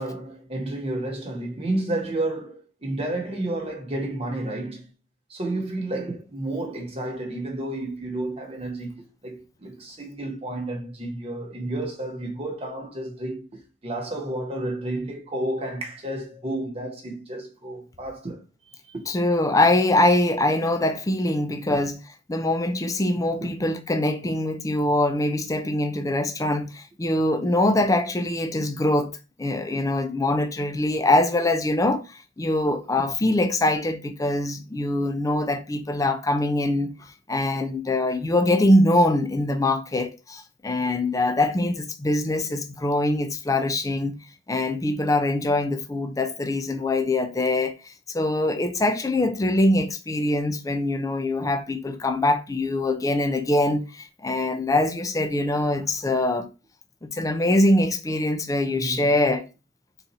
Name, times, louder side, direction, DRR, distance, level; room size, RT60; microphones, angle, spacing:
voice 1, 0.0-4.9 5.3-13.5 13.8-18.4 18.9-19.0 21.7-21.8 58.6-59.1, right 1 dB, 30° right, 1.2 m, -31 dB
voice 2, 19.1-22.0 22.3-32.0 32.4-36.9 37.3-44.2 44.5-56.5 57.0-59.4, left 1 dB, 15° left, 0.4 m, -23 dB
4.0 x 2.6 x 4.1 m
head